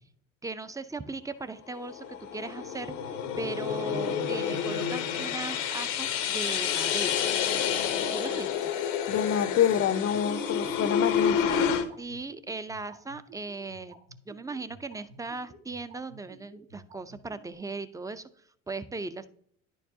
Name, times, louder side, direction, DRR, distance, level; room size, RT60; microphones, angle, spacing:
voice 1, 0.4-7.2 8.1-8.7 12.0-14.0 14.3-18.3 18.7-19.3, right 3 dB, 10° right, 0.4 m, -38 dB
sound 1, 1.7-11.8, left 8 dB, 80° left, 0.9 m, -29 dB
voice 2, 9.1-11.7, left 9 dB, 40° left, 0.5 m, -27 dB
sound 2, 9.1-17.5, right 3 dB, 90° right, 1.6 m, -51 dB
10.5 x 4.6 x 2.7 m
hypercardioid pair, 75°, 37 cm